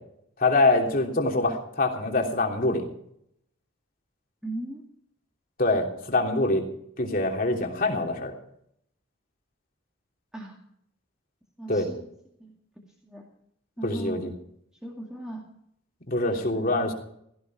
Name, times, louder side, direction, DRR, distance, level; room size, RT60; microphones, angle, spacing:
voice 1, 0.4-2.8 5.6-6.6 7.0-8.3 11.7-11.9 13.8-14.3 16.1-16.9, left 2 dB, 45° left, 2 dB, 3.1 m, -24 dB
voice 2, 4.4-4.8 10.3-10.6 11.6-12.0 12.4-13.3 13.8-14.3 14.8-15.4 16.3-16.7, right 1 dB, 5° right, -2 dB, 2.3 m, -38 dB
17.5 x 15.0 x 4.8 m, 0.72 s
head